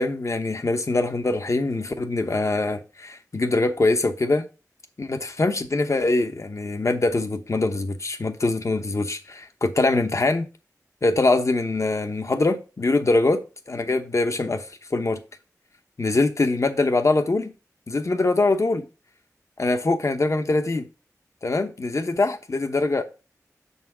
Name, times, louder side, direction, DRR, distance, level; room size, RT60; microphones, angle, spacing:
voice 1, 0.0-4.5 5.0-10.5 11.0-15.2 16.0-17.5 17.9-18.9 19.6-20.9 21.4-23.0, left 2 dB, 55° left, 0.9 m, -23 dB
6.8 x 4.1 x 4.8 m
wide cardioid pair, 60°, 6 cm